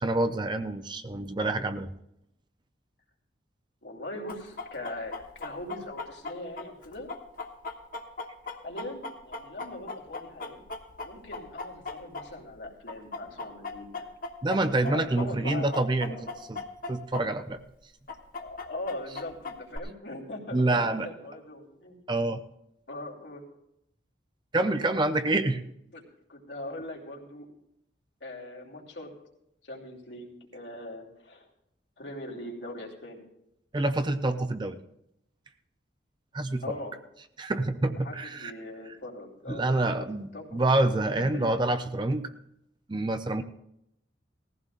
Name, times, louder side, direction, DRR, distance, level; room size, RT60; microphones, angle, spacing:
voice 1, 0.0-1.9 14.4-17.6 20.5-21.1 22.1-22.4 24.5-25.6 33.7-34.8 36.3-36.6 37.4-38.5 39.5-42.3 42.9-43.4, right 2 dB, 25° right, 9 dB, 0.5 m, -27 dB
voice 2, 3.8-5.1 5.4-7.1 8.6-10.6 11.0-14.1 14.9-15.8 16.1-16.4 18.3-22.0 22.9-23.4 25.9-26.0 26.3-27.5 28.2-29.1 29.6-31.5 32.0-33.3 36.6-36.9 37.9-40.1 40.3-41.5, left 1 dB, 80° left, -1 dB, 2.8 m, -41 dB
Chicken rooster, 4.3-12.6 12.9-17.2 17.5-17.6 18.1-19.8, left 3 dB, 50° left, 1.1 m, -38 dB
19.0 x 15.0 x 2.5 m, 0.80 s
head